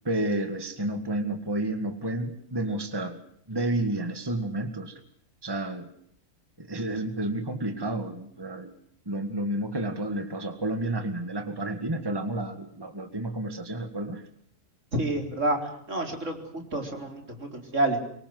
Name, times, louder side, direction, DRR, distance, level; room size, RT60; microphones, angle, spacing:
voice 1, 0.0-3.2 3.5-5.0 5.4-5.9 6.6-8.7 9.1-14.2, right 1 dB, 15° right, 9 dB, 2.0 m, -30 dB
voice 2, 14.9-18.0, right 1 dB, 65° right, 5 dB, 4.5 m, -29 dB
25.0 x 24.0 x 7.8 m, 0.65 s
omnidirectional pair, 1.4 m